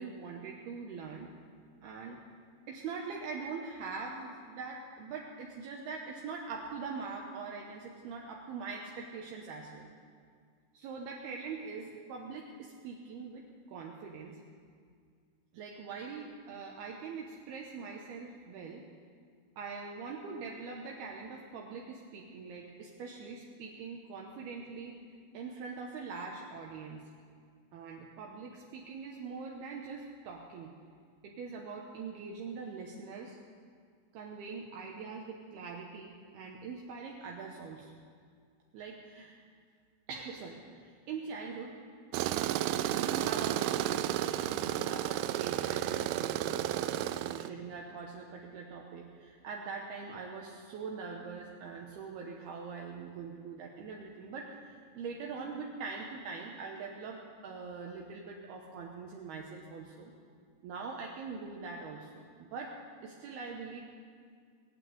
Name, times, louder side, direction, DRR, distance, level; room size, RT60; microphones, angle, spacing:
voice 1, 0.0-1.3 1.8-2.2 2.7-9.9 10.7-14.4 15.5-18.8 19.6-25.0 25.3-27.0 27.7-30.7 31.2-33.4 34.1-38.0 38.7-39.4 40.1-41.7 42.8-60.1 60.6-62.7 63.0-63.8, right 5 dB, 75° right, -1 dB, 2.8 m, -43 dB
Tools, 42.1-47.5, right 12 dB, 90° right, 2.2 m, -32 dB
19.5 x 8.9 x 7.8 m, 2.1 s
omnidirectional pair, 5.0 m